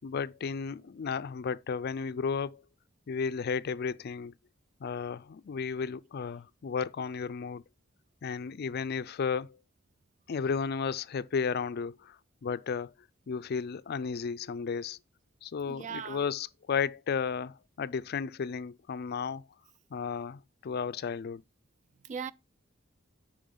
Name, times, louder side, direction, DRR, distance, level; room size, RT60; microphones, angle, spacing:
voice 1, 0.0-2.6 3.1-4.3 4.8-7.6 8.2-9.6 10.3-12.9 13.3-15.0 15.4-19.4 19.9-21.4, left 6 dB, 50° left, 0.4 m, -33 dB
voice 2, 15.6-16.3 22.0-22.3, right 6 dB, 40° right, 0.3 m, -38 dB
8.7 x 4.8 x 3.8 m
head